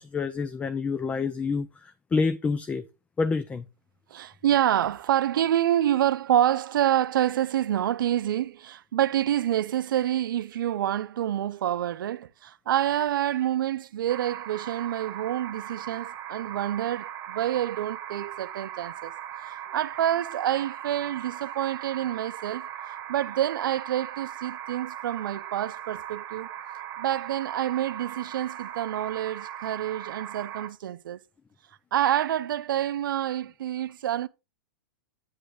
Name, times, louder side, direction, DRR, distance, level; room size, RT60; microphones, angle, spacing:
voice 1, 0.0-2.9 3.2-3.7, left 4 dB, 10° left, 0.4 m, -28 dB
voice 2, 4.1-19.1 19.7-22.7 23.1-26.5 27.0-31.2 31.9-34.3, right 11 dB, 80° right, 0.6 m, -27 dB
Distant Fountain, 14.1-30.7, right 11 dB, 30° right, 1.4 m, -39 dB
8.9 x 3.0 x 6.4 m
hypercardioid pair, 135°, 11 cm